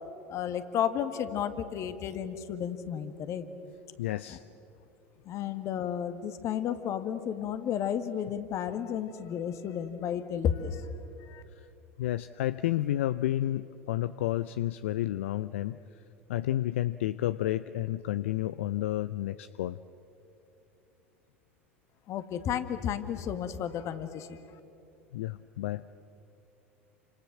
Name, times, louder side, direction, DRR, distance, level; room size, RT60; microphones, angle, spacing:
voice 1, 0.3-3.5 4.3-4.4 5.3-10.8 11.3-11.4 22.1-24.4, left 9 dB, 45° left, 10 dB, 1.8 m, -32 dB
voice 2, 4.0-4.4 11.6-11.7 12.0-15.8 16.3-19.8 25.1-25.8, left 14 dB, 70° left, 14 dB, 0.5 m, -31 dB
29.5 x 26.0 x 7.4 m, 2.8 s
figure-of-eight pair, 80°, 7 cm